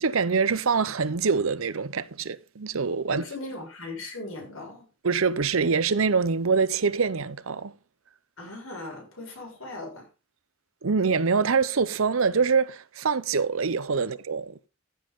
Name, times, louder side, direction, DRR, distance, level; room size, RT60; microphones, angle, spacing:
voice 1, 0.0-3.2 5.0-7.7 10.8-14.7, right 5 dB, 75° right, 0.7 m, -25 dB
voice 2, 3.1-4.9 8.4-10.1 14.0-14.1, left 2 dB, 80° left, 7.4 m, -38 dB
15.0 x 7.8 x 3.7 m
head